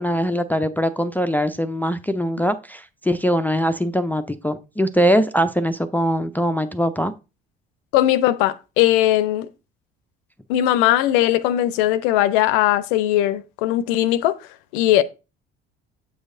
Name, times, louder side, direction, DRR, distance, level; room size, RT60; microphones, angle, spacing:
voice 1, 0.0-7.1, equal, 5° left, 0.4 m, -22 dB
voice 2, 7.9-9.5 10.5-14.4 14.7-15.0, left 13 dB, 60° left, 0.5 m, -19 dB
7.8 x 6.2 x 2.5 m
figure-of-eight pair, 55°, 31 cm